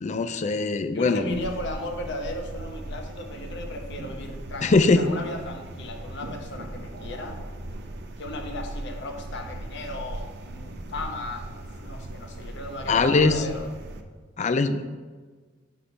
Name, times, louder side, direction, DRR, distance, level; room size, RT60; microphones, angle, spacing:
voice 1, 0.0-1.4 4.6-5.0 12.9-13.4 14.4-15.0, left 3 dB, 40° left, 10 dB, 0.4 m, -21 dB
voice 2, 0.9-7.4 8.2-13.7, left 1 dB, 65° left, 4 dB, 0.9 m, -36 dB
sound 1, 1.3-14.0, right 1 dB, 60° right, 0.6 m, -38 dB
6.3 x 5.6 x 4.2 m, 1.4 s
head